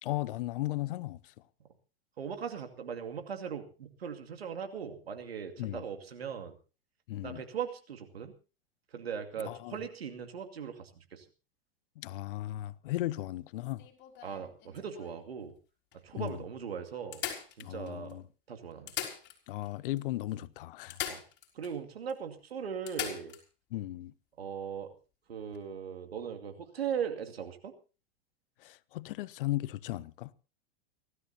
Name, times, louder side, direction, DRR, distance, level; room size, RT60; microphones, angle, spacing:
voice 1, 0.0-1.3 5.6-5.8 7.1-7.4 9.4-9.8 12.0-13.8 16.1-16.4 17.6-18.2 19.5-21.0 23.7-24.1 28.6-30.3, left 16 dB, 65° left, 0.9 m, -36 dB
voice 2, 2.2-6.5 7.2-8.3 8.9-11.2 14.2-15.5 16.0-17.2 17.6-18.2 18.5-18.9 21.1-21.2 21.5-23.3 24.4-24.9 25.3-27.7, right 7 dB, 80° right, 2.5 m, -39 dB
sound 1, 13.6-15.2 15.9-16.0 16.3-16.4 17.1-18.1 18.7-19.7 20.0-20.1 20.9-21.8 22.1-22.2 22.9-23.4 25.4-25.6, left 10 dB, 35° left, 4.5 m, -40 dB
29.5 x 13.0 x 2.8 m
hypercardioid pair, 95°, 30 cm